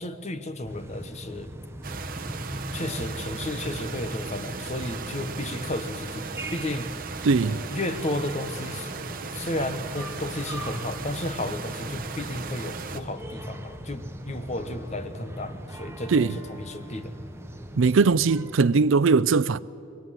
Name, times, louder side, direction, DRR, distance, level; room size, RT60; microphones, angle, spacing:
voice 1, 0.0-1.5 2.7-6.9 7.7-8.9 9.3-17.1, left 1 dB, 35° left, 1.2 m, -33 dB
sound 1, 0.7-18.7, right 1 dB, 10° right, 1.0 m, -39 dB
sound 2, 1.8-13.0, right 5 dB, 45° right, 1.2 m, -37 dB
sound 3, 2.1-18.9, left 1 dB, 85° left, 4.9 m, -48 dB
voice 2, 7.2-7.6 16.1-16.4 17.8-19.6, right 4 dB, 70° right, 0.5 m, -20 dB
25.0 x 21.0 x 7.6 m
head